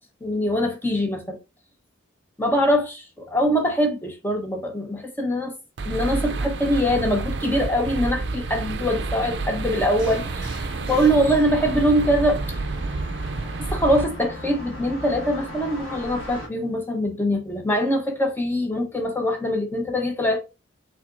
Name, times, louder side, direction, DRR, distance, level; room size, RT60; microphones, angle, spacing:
voice 1, 0.2-1.4 2.4-5.5 5.8-10.6 10.9-12.6 13.7-20.4, equal, 10° left, 0.9 m, -23 dB
sound 1, 5.8-14.1, right 3 dB, 55° right, 0.5 m, -29 dB
sound 2, 9.3-16.5, right 1 dB, 80° left, 1.6 m, -39 dB
sound 3, 10.0-16.9, left 3 dB, 55° left, 1.6 m, -43 dB
5.7 x 3.5 x 2.5 m
head